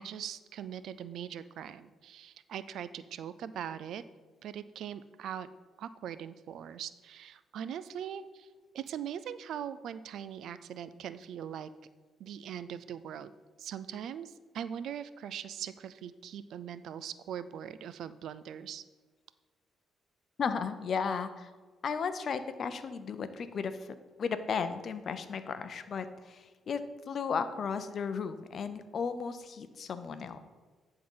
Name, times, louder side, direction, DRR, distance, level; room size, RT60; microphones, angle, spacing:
voice 1, 0.0-4.0 4.4-5.5 5.8-8.5 8.7-11.7 12.2-13.3 13.6-18.8, right 9 dB, 75° right, 14 dB, 0.4 m, -41 dB
voice 2, 20.4-21.5 21.8-30.4, left 6 dB, 55° left, 11 dB, 0.6 m, -35 dB
10.5 x 3.8 x 5.5 m, 1.4 s
cardioid pair, 90°, 0 cm